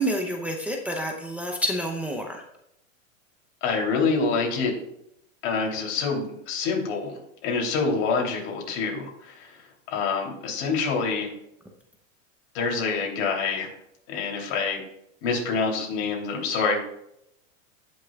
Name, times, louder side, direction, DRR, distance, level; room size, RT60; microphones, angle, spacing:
voice 1, 0.0-2.4, right 1 dB, 5° right, 1 dB, 0.7 m, -28 dB
voice 2, 3.6-4.7 5.4-11.3 12.5-13.7 14.1-14.8 15.2-16.8, left 4 dB, 55° left, 0 dB, 3.2 m, -26 dB
17.5 x 6.4 x 2.4 m, 0.78 s
supercardioid pair, 135°, 40 cm